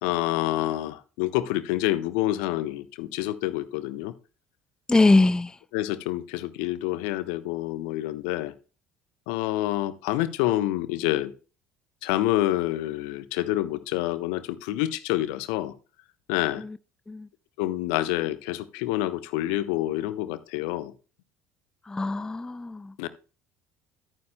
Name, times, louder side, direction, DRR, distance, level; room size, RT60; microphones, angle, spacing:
voice 1, 0.0-4.1 5.7-8.5 9.3-11.3 12.0-15.7 16.3-16.6 17.6-20.9 23.0-23.1, left 15 dB, 60° left, 0.7 m, -27 dB
voice 2, 4.9-5.6 17.1-17.3 21.9-22.9, left 2 dB, 10° left, 0.3 m, -22 dB
13.0 x 9.3 x 2.2 m
figure-of-eight pair, 60°, 7 cm